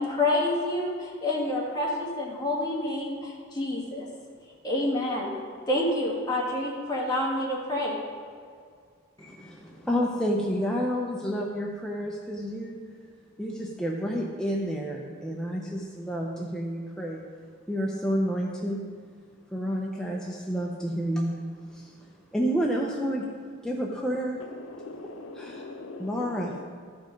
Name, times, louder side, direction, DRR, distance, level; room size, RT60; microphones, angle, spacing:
voice 1, 0.0-4.1 4.6-5.3 5.7-8.0 9.2-9.3, left 1 dB, 20° left, -4 dB, 1.9 m, -28 dB
voice 2, 9.2-12.8 13.4-17.2 17.7-18.8 19.5-21.4 21.7-22.0 22.3-23.3 23.6-24.4 25.3-25.6 26.0-26.6, equal, 5° left, -2 dB, 0.6 m, -30 dB
voice 3, 24.6-26.6, left 2 dB, 90° left, 5 dB, 0.7 m, -41 dB
12.5 x 5.3 x 5.1 m, 2.1 s
head